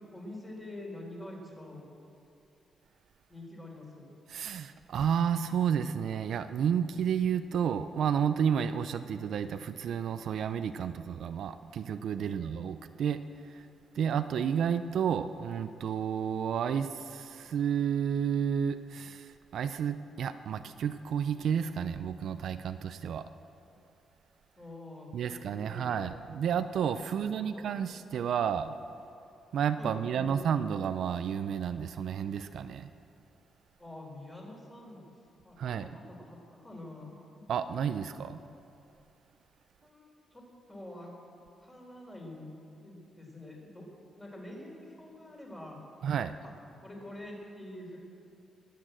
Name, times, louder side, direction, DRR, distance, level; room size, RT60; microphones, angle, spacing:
voice 1, 0.1-1.9 3.3-4.1 12.1-12.6 24.6-26.1 27.1-27.7 29.8-30.3 33.8-35.0 35.4-35.9 36.2-37.4 39.8-41.1 41.6-42.5 42.8-43.9 44.2-45.8 46.4-46.5 46.8-48.0, left 1 dB, 15° left, -2 dB, 4.0 m, -46 dB
voice 2, 4.3-13.7 13.9-23.3 25.1-28.8 29.5-32.9 35.6-35.9 37.5-38.4 46.0-46.3, right 8 dB, 65° right, 10 dB, 0.5 m, -31 dB
21.0 x 8.6 x 7.6 m, 2.6 s
cardioid pair, 130°, 0 cm